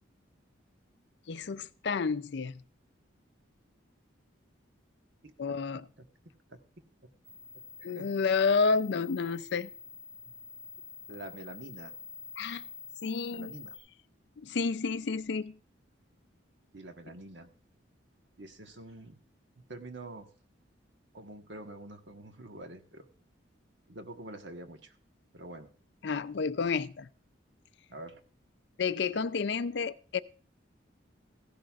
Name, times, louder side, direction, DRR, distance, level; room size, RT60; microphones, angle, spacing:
voice 1, 1.3-2.6 5.4-5.8 7.8-9.7 12.4-12.6 13.0-13.5 14.4-15.6 26.0-27.1 28.8-30.2, left 5 dB, 60° left, 0.5 m, -30 dB
voice 2, 5.2-6.0 6.5-6.6 7.5-8.2 11.1-11.9 13.3-13.8 16.7-17.5 18.4-19.2 19.5-20.3 21.1-23.1 23.9-25.0 25.3-25.7 27.9-28.2, right 2 dB, 65° right, 1.3 m, -46 dB
sound 1, 7.2-13.8, left 4 dB, 25° right, 7.3 m, -47 dB
15.5 x 12.0 x 2.4 m
head